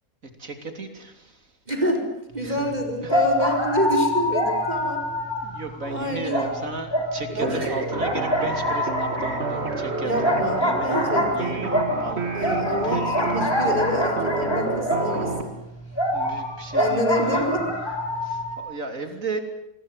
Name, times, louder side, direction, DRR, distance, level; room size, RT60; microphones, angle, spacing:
voice 1, 0.4-1.5 2.4-2.7 3.0-3.2 5.4-11.1 11.3-13.3 13.9-14.1 16.1-17.6 18.2-19.4, right 3 dB, 70° right, 7 dB, 3.5 m, -35 dB
voice 2, 1.7-2.1 2.3-5.0 5.9-6.5 7.3-7.7 10.0-11.8 12.3-15.5 16.7-17.8, equal, 30° right, 4 dB, 4.7 m, -27 dB
sound 1, 2.5-2.6 3.1-5.9 6.3-7.6 8.0-15.4 15.9-18.6, left 1 dB, 15° left, 5.5 m, -25 dB
sound 2, 7.4-15.4, right 3 dB, 50° right, 2.9 m, -29 dB
26.0 x 21.5 x 9.2 m, 0.82 s
omnidirectional pair, 1.5 m